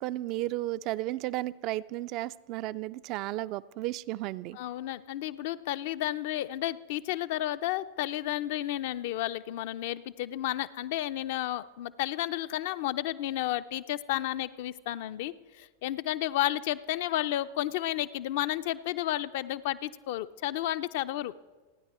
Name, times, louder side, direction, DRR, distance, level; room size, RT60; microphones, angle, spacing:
voice 1, 0.0-4.6, right 16 dB, 50° right, 16 dB, 0.3 m, -33 dB
voice 2, 4.5-21.3, left 14 dB, 60° left, 13 dB, 0.5 m, -32 dB
28.5 x 10.0 x 3.0 m, 1.3 s
figure-of-eight pair, 90°, 0 cm